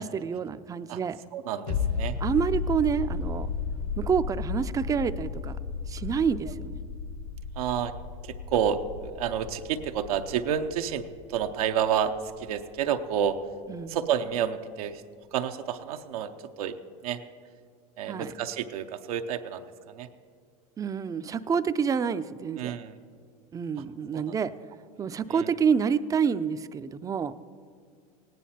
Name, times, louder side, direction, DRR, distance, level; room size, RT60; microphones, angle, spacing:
voice 1, 0.0-1.2 2.2-3.5 4.0-5.6 5.9-6.8 13.7-14.0 18.1-18.3 20.8-22.7 23.5-24.5 25.0-27.3, right 6 dB, 20° right, 12 dB, 0.4 m, -28 dB
voice 2, 1.3-2.2 7.6-7.9 8.2-13.4 13.9-15.0 15.3-16.7 17.0-17.2 18.0-20.1 22.6-23.0 24.1-24.3 25.3-25.5, right 8 dB, 85° right, 6 dB, 0.7 m, -30 dB
sound 1, 1.7-13.0 13.3-13.4, left 5 dB, 65° left, 1.2 m, -34 dB
18.0 x 9.2 x 4.3 m, 2.2 s
supercardioid pair, 110°, 18 cm